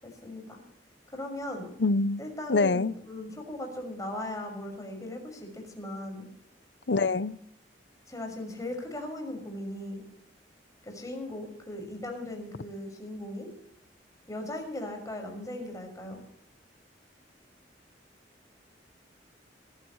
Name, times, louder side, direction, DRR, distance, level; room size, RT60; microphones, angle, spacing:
voice 1, 0.0-0.6 1.1-1.8 2.2-6.2 8.1-10.0 10.8-13.5 14.3-16.2, left 1 dB, 20° left, 2 dB, 5.9 m, -38 dB
voice 2, 1.8-2.2 2.5-2.9 6.9-7.3, left 3 dB, 75° left, 16 dB, 0.7 m, -25 dB
26.0 x 14.0 x 3.2 m, 0.68 s
head